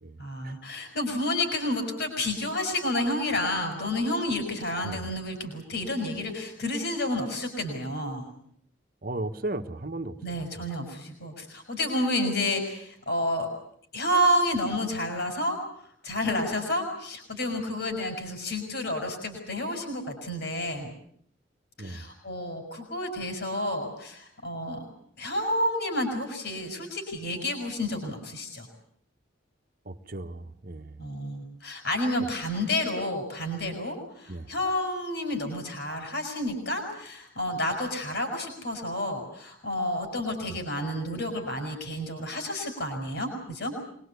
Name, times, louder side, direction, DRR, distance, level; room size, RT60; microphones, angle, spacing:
voice 1, 0.2-8.3 10.2-13.5 13.9-15.6 16.0-20.9 21.8-24.8 25.2-28.7 31.0-43.7, left 1 dB, 60° left, 3 dB, 5.0 m, -30 dB
voice 2, 9.0-10.7 21.8-22.1 29.8-31.0 34.3-34.5 40.5-40.6, right 2 dB, 45° right, 6 dB, 1.4 m, -36 dB
25.0 x 21.0 x 8.3 m, 0.67 s
head